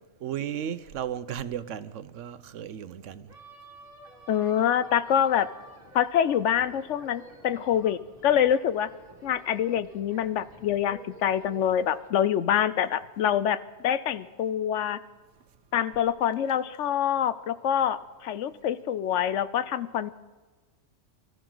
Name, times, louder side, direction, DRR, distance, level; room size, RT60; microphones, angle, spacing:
voice 1, 0.2-3.3, right 9 dB, 85° right, 1.1 m, -35 dB
sound 1, 3.3-12.1, right 2 dB, 50° right, 2.5 m, -51 dB
voice 2, 4.3-5.5 5.9-8.9 9.2-13.6 13.8-15.0 15.7-20.1, left 9 dB, 75° left, 1.0 m, -25 dB
24.0 x 14.0 x 3.9 m
omnidirectional pair, 1.2 m